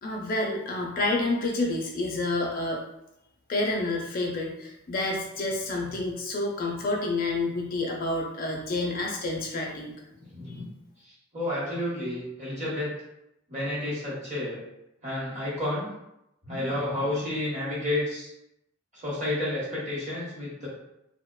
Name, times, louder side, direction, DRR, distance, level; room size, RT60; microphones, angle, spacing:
voice 1, 0.0-2.8 3.5-10.0, left 2 dB, 40° left, 0 dB, 0.4 m, -29 dB
voice 2, 10.2-10.7 11.3-12.9 13.5-14.6 15.0-15.8 16.4-18.3 18.9-20.7, left 1 dB, 35° right, -6 dB, 0.9 m, -30 dB
2.7 x 2.0 x 2.2 m, 0.84 s
head